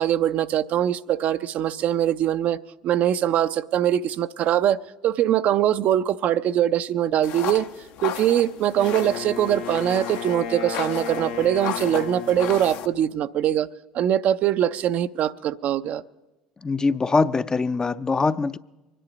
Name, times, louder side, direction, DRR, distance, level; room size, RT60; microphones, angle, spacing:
voice 1, 0.0-4.8 5.0-7.7 8.0-13.7 13.9-16.0, right 11 dB, 55° right, 0.5 m, -22 dB
sound 1, 7.2-12.9, left 10 dB, 65° left, 0.8 m, -35 dB
Wind instrument woodwind instrument, 8.8-12.9, left 7 dB, 85° left, 1.2 m, -34 dB
voice 2, 16.6-18.6, left 4 dB, 25° left, 0.5 m, -22 dB
23.5 x 10.0 x 5.1 m
hypercardioid pair, 75°, 3 cm